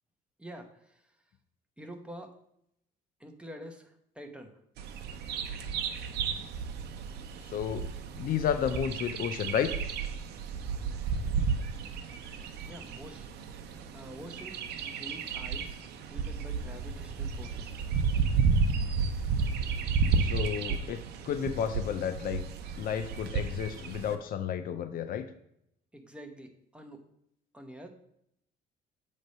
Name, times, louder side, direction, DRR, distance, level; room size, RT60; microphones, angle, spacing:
voice 1, 0.4-1.1 1.8-2.4 3.2-4.6 12.6-15.8 16.1-17.8 25.9-27.0 27.5-27.9, equal, 5° right, 5 dB, 0.9 m, -47 dB
Bird vocalization bird call bird song, 4.8-24.1, right 5 dB, 75° right, 0.7 m, -32 dB
voice 2, 7.5-7.8 8.2-9.7 20.2-22.4 22.8-25.2, left 8 dB, 60° left, 10 dB, 0.5 m, -32 dB
7.6 x 3.3 x 5.4 m, 0.74 s
cardioid pair, 110°, 17 cm